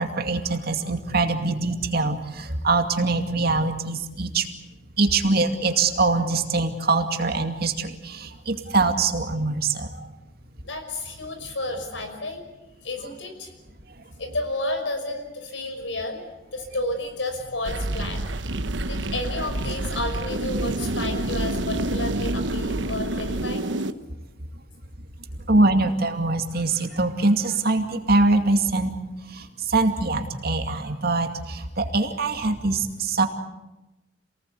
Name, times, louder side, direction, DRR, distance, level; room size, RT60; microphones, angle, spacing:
voice 1, 0.0-4.5 5.0-10.1 25.5-28.9 29.3-33.3, right 3 dB, 60° right, 5 dB, 2.4 m, -23 dB
voice 2, 10.6-12.4 12.8-13.5 14.2-16.2 16.5-18.2 18.9-23.7, left 2 dB, 90° left, 6 dB, 5.8 m, -31 dB
sound 1, 17.6-23.9, right 1 dB, 80° right, 1.2 m, -28 dB
28.0 x 18.5 x 8.3 m, 1.0 s
head